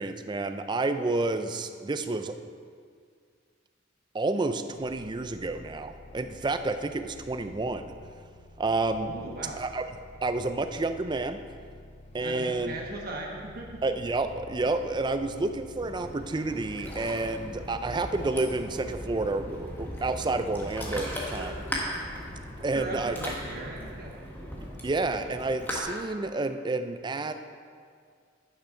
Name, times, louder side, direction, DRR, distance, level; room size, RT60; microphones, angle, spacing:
voice 1, 0.0-2.4 4.1-7.9 8.6-9.1 9.6-9.8 10.2-11.4 12.1-12.7 13.8-21.6 22.6-23.2 24.8-27.3, right 2 dB, 25° right, 8 dB, 0.4 m, -30 dB
sound 1, 4.7-24.2, left 1 dB, 35° left, 0.7 m, -49 dB
voice 2, 9.1-9.6 12.2-13.8 22.7-24.1, right 2 dB, 50° right, -1 dB, 1.2 m, -38 dB
Ocean, 15.8-25.8, equal, 10° left, 1.4 m, -38 dB
10.5 x 6.3 x 5.6 m, 2.1 s
head